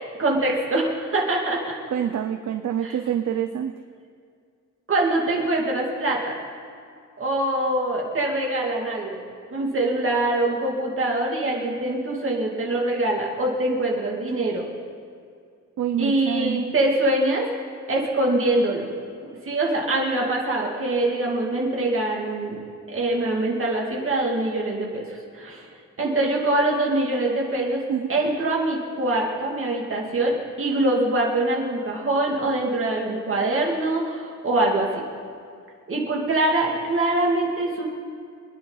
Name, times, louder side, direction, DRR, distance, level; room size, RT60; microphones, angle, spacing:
voice 1, 0.2-1.7 2.8-3.0 4.9-6.3 7.2-9.2 9.5-14.6 16.0-17.5 17.9-18.9 19.4-22.6 22.9-25.7 26.0-27.8 28.1-35.0 35.9-37.8, right 2 dB, 45° right, -2 dB, 2.6 m, -24 dB
voice 2, 1.9-3.7 15.8-16.7 27.9-28.1, right 9 dB, 65° right, 8 dB, 0.6 m, -26 dB
25.5 x 10.0 x 4.1 m, 2.3 s
wide cardioid pair, 170°, 30 cm